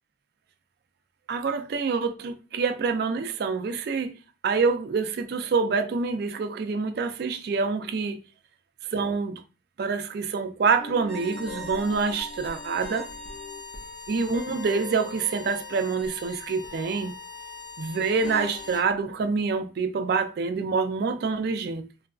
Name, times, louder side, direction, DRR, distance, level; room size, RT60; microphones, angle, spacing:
voice 1, 1.3-4.1 4.4-8.2 8.9-9.4 9.8-13.1 14.1-17.2 17.8-21.9, right 4 dB, 55° right, 0.3 m, -26 dB
sound 1, 10.8-16.3 16.6-18.9, left 2 dB, 65° left, 0.6 m, -43 dB
sound 2, 11.0-18.9, left 2 dB, ahead, 0.8 m, -42 dB
3.8 x 2.3 x 2.3 m
head